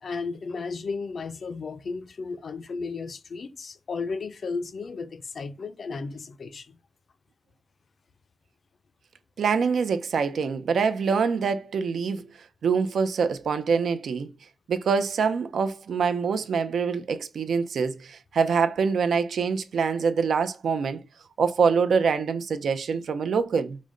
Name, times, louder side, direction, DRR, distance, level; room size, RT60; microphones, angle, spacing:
voice 1, 0.0-6.8, left 4 dB, 50° left, 0.4 m, -34 dB
voice 2, 9.4-12.3 12.6-14.3 14.7-21.0 21.4-23.8, right 5 dB, 90° right, 0.5 m, -25 dB
4.9 x 2.1 x 3.7 m
wide cardioid pair, 170°, 0 cm